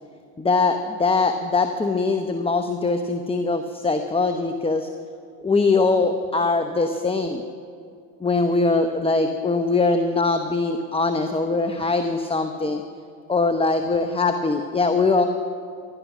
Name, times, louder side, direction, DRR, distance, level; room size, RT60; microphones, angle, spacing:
voice 1, 0.4-4.9 5.4-7.4 8.2-12.8 13.3-15.3, left 3 dB, 10° left, 7 dB, 0.9 m, -22 dB
15.5 x 12.0 x 6.1 m, 2.4 s
hypercardioid pair, 70°, 45 cm